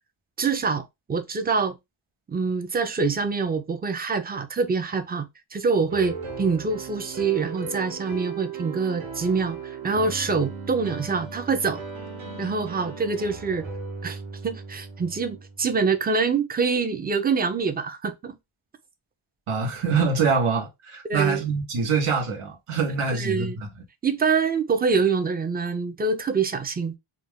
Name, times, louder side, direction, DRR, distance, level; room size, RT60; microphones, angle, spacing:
voice 1, 0.4-1.8 2.3-11.8 12.4-13.7 14.0-18.4 21.1-21.4 23.1-23.6 24.0-27.0, right 5 dB, 20° right, 0.3 m, -25 dB
sound 1, 5.9-15.7, right 5 dB, 65° right, 1.0 m, -37 dB
voice 2, 19.5-23.7, right 5 dB, 90° right, 1.0 m, -24 dB
2.4 x 2.2 x 3.4 m
wide cardioid pair, 110°, 50 cm